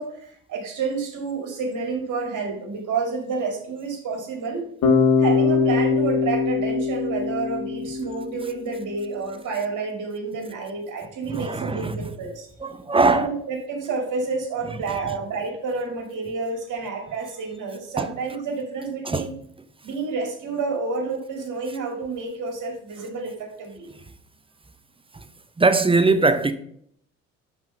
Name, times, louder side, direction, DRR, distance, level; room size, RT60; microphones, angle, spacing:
voice 1, 0.0-4.7 5.2-12.5 13.0-19.3 19.8-23.9, right 4 dB, 55° right, 2.2 m, -29 dB
Bass guitar, 4.8-8.8, left 5 dB, 60° left, 2.0 m, -22 dB
voice 2, 11.3-12.1 12.6-13.3 14.9-15.0 18.0-18.1 19.1-19.3 25.1-25.2 25.6-26.5, right 3 dB, 15° right, 0.6 m, -21 dB
5.5 x 4.5 x 5.0 m
hypercardioid pair, 60°, 37 cm